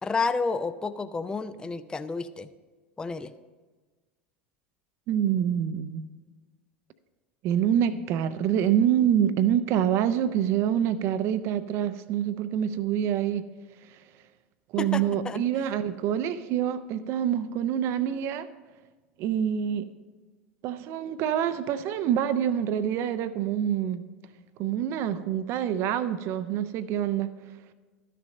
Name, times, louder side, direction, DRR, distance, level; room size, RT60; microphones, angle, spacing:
voice 1, 0.0-2.5 3.0-3.3 14.8-15.4, left 4 dB, 15° left, 13 dB, 0.4 m, -30 dB
voice 2, 5.1-6.0 7.4-13.4 14.7-18.5 19.2-19.9 20.6-24.0 24.6-27.3, right 9 dB, 45° right, 13 dB, 0.5 m, -26 dB
12.5 x 6.6 x 5.2 m, 1.3 s
figure-of-eight pair, 75°, 6 cm